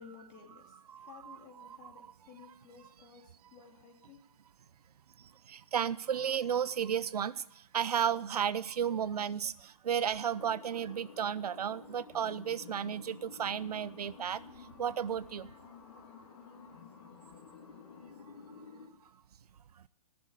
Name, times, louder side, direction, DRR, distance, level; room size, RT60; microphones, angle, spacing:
voice 1, 0.0-4.2, left 6 dB, 30° left, 2 dB, 2.5 m, -55 dB
voice 2, 0.9-2.1 5.5-7.4 7.7-14.4 14.8-15.5, right 8 dB, 80° right, 18 dB, 0.7 m, -33 dB
sound 1, 10.3-18.9, left 5 dB, 55° left, 3.0 m, -52 dB
14.5 x 6.9 x 9.7 m, 0.80 s
hypercardioid pair, 150°, 20 cm